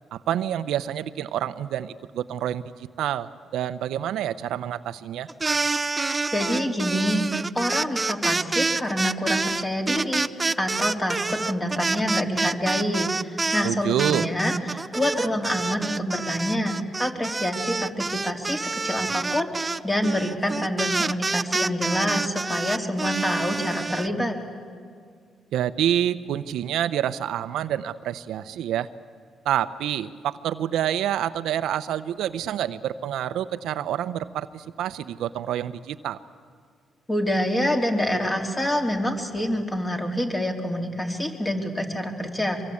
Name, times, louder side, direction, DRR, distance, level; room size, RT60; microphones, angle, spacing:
voice 1, 0.1-5.3 13.6-14.3 25.5-28.9 29.4-36.2, right 11 dB, 80° right, 12 dB, 0.7 m, -27 dB
sound 1, 5.3-13.7 14.0-24.1, right 3 dB, 25° right, 0.6 m, -27 dB
voice 2, 6.3-7.3 7.6-10.3 10.6-24.4 37.1-42.6, left 1 dB, 15° left, 3 dB, 3.4 m, -27 dB
24.0 x 23.0 x 8.6 m, 2.1 s
cardioid pair, 90°, 0 cm